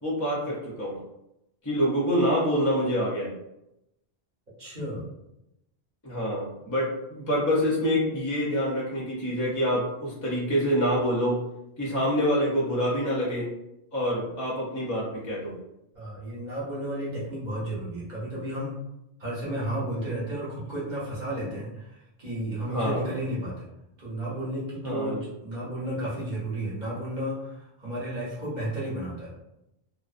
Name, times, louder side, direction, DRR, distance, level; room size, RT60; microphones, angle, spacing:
voice 1, 0.0-1.0 1.6-3.3 6.0-11.4 11.8-13.5 13.9-15.5 22.7-23.0 24.8-25.2, equal, 25° left, -5 dB, 0.5 m, -26 dB
voice 2, 4.6-5.1 15.9-18.8 19.2-23.7 24.0-29.3, right 1 dB, 45° right, -7 dB, 0.9 m, -33 dB
2.5 x 2.0 x 2.4 m, 0.88 s
omnidirectional pair, 1.1 m